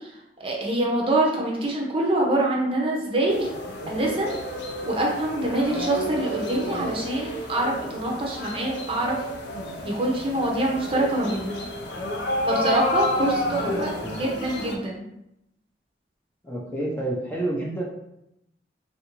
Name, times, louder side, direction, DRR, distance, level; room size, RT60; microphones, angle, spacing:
voice 1, 0.0-3.5 3.9-4.3 4.9-9.2 9.8-11.5 12.4-13.9 14.2-15.0, right 1 dB, 30° right, -2 dB, 0.6 m, -25 dB
sound 1, 3.3-14.8, left 1 dB, 65° left, 0.6 m, -31 dB
voice 2, 13.6-14.3 16.4-17.8, right 1 dB, 10° left, -4 dB, 0.5 m, -30 dB
3.4 x 2.5 x 2.9 m, 0.82 s
head